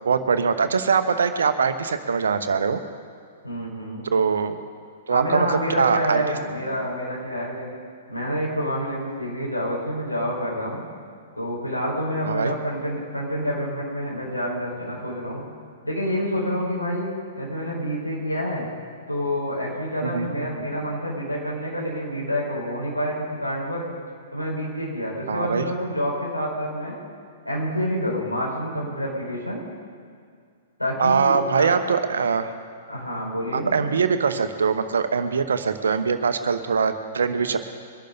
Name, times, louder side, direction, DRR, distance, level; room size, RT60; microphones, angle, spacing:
voice 1, 0.0-2.8 4.1-4.6 5.1-6.3 12.3-12.5 20.0-20.5 25.3-25.7 31.0-32.5 33.5-37.6, right 5 dB, 65° right, 10 dB, 1.0 m, -22 dB
voice 2, 3.4-4.1 5.1-7.7 8.1-10.8 11.3-15.4 15.8-17.1 17.3-18.7 19.1-23.8 24.3-27.0 27.4-29.6 30.8-31.8 32.9-33.8, equal, 90° left, -4 dB, 5.0 m, -28 dB
23.0 x 11.5 x 4.0 m, 2.2 s
figure-of-eight pair, 110°, 0 cm